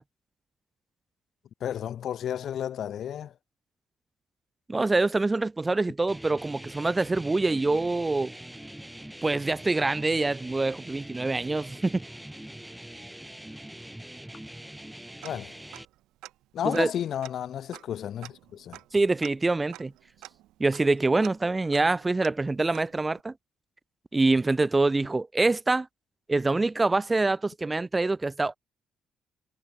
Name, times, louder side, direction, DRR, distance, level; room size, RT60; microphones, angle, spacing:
voice 1, 1.6-3.3 15.2-15.6 16.5-18.8, left 10 dB, 65° left, 5.8 m, -32 dB
voice 2, 4.7-8.3 9.2-12.0 16.6-16.9 18.9-19.9 20.6-23.3 24.1-25.9 26.3-28.6, right 3 dB, 25° right, 1.4 m, -25 dB
sound 1, 6.1-15.9, right 1 dB, 5° right, 3.1 m, -43 dB
Tick-tock, 15.2-16.3 16.7-23.2, right 16 dB, 80° right, 3.1 m, -49 dB
hypercardioid pair, 50°, 0 cm